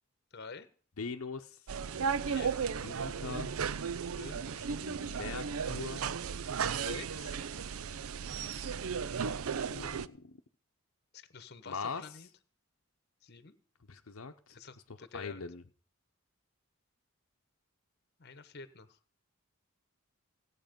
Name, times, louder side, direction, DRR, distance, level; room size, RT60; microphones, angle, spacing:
voice 1, 0.3-0.7 2.2-2.5 4.2-4.7 6.8-7.4 11.1-12.3 13.2-13.6 14.5-15.4 18.2-19.0, left 4 dB, 45° left, 13 dB, 1.0 m, -48 dB
voice 2, 1.0-1.6 2.8-3.5 4.9-6.0 9.7-10.4 11.6-12.0 13.9-14.6 15.1-15.6, left 5 dB, 70° left, 5 dB, 0.8 m, -41 dB
sound 1, 1.7-10.1, right 6 dB, 70° right, 0.5 m, -35 dB
16.5 x 8.4 x 5.2 m, 0.43 s
head